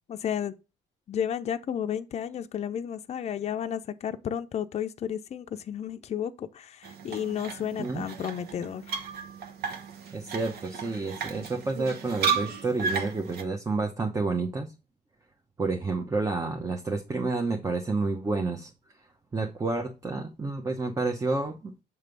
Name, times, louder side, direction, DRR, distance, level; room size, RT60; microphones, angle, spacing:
voice 1, 0.1-0.6 1.1-9.0, left 9 dB, 40° left, 0.6 m, -32 dB
sound 1, 6.8-13.4, right 6 dB, 70° right, 1.0 m, -34 dB
voice 2, 10.1-14.7 15.6-18.7 19.3-21.7, right 3 dB, 20° right, 0.9 m, -29 dB
6.9 x 3.2 x 5.2 m
cardioid pair, 110°, 17 cm